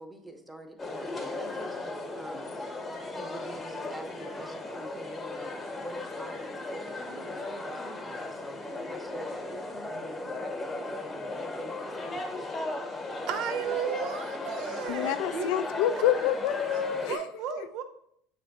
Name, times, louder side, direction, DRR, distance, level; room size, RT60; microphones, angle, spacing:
voice 1, 0.0-1.8 2.1-2.6 3.0-12.5, right 1 dB, 5° right, 5 dB, 0.7 m, -46 dB
sound 1, 0.8-17.2, left 2 dB, 20° left, 0.9 m, -36 dB
voice 2, 13.3-15.5 17.1-17.8, right 8 dB, 60° right, 9 dB, 0.6 m, -34 dB
voice 3, 14.9-17.7, left 10 dB, 80° left, 11 dB, 0.4 m, -28 dB
7.2 x 3.3 x 4.0 m, 0.71 s
cardioid pair, 155°, 0 cm